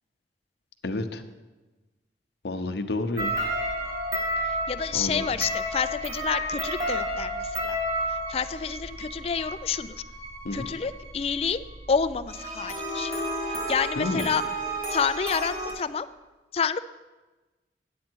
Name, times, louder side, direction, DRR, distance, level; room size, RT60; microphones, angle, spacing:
voice 1, 0.8-1.2 2.4-3.4 4.9-5.3 10.4-10.7 14.0-14.3, left 2 dB, 75° left, 7 dB, 0.7 m, -30 dB
sound 1, 3.2-15.7, equal, 35° right, 3.0 m, -32 dB
voice 2, 4.7-7.8 8.3-9.9 10.5-11.6 11.9-13.1 13.5-14.4 14.9-16.1 16.5-16.8, left 6 dB, 35° left, 12 dB, 0.3 m, -28 dB
9.6 x 8.5 x 4.5 m, 1.2 s
head